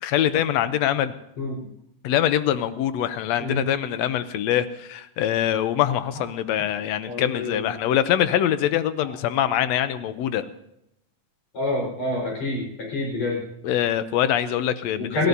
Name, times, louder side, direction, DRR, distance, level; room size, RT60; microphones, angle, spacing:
voice 1, 0.0-1.1 2.0-10.5 13.6-15.3, left 11 dB, 75° left, 12 dB, 1.7 m, -24 dB
voice 2, 7.1-7.7 11.5-13.4 15.0-15.3, left 2 dB, 60° left, -2 dB, 5.9 m, -27 dB
29.0 x 13.5 x 2.7 m, 0.80 s
omnidirectional pair, 3.5 m